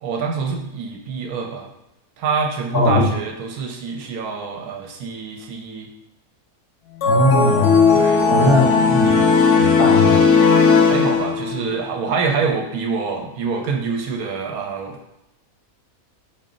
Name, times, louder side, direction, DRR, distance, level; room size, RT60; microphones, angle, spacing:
voice 1, 0.0-1.7 2.2-5.9 7.9-8.6 10.9-15.0, right 5 dB, 80° right, 2 dB, 1.1 m, -26 dB
voice 2, 2.7-3.1 7.0-7.8 8.3-9.3 9.5-10.2, left 2 dB, 40° left, -6 dB, 1.2 m, -19 dB
sound 1, 7.0-11.7, left 5 dB, 60° left, 0.8 m, -16 dB
4.1 x 2.1 x 3.8 m, 0.89 s
omnidirectional pair, 1.6 m